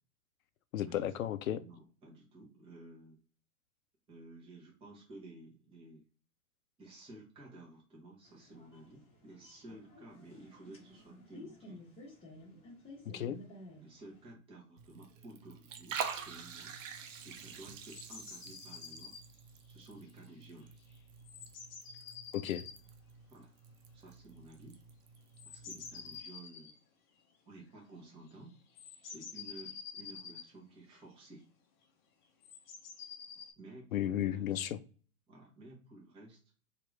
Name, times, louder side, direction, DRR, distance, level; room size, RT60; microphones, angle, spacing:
voice 1, 0.7-1.6 13.1-13.4 22.3-22.7 33.9-34.8, left 11 dB, 70° left, 0.5 m, -34 dB
voice 2, 1.6-3.2 4.1-6.1 6.8-11.8 13.1-13.4 13.8-16.7 17.2-19.2 19.7-20.7 23.3-23.5 23.9-24.8 25.4-26.7 27.5-28.5 29.0-31.5 33.6-34.5 35.3-36.4, right 2 dB, 15° right, 0.9 m, -53 dB
sound 1, 8.2-14.3, left 1 dB, 15° left, 1.0 m, -54 dB
Liquid, 14.8-26.2, right 6 dB, 60° right, 0.7 m, -47 dB
sound 2, 17.8-19.3 20.5-20.7 20.9-21.0 21.2-22.8 25.3-26.8 28.0-28.1 28.3-28.4 28.8-30.5 32.4-33.5, left 6 dB, 35° left, 0.6 m, -48 dB
2.9 x 2.5 x 3.1 m
figure-of-eight pair, 110°, 43 cm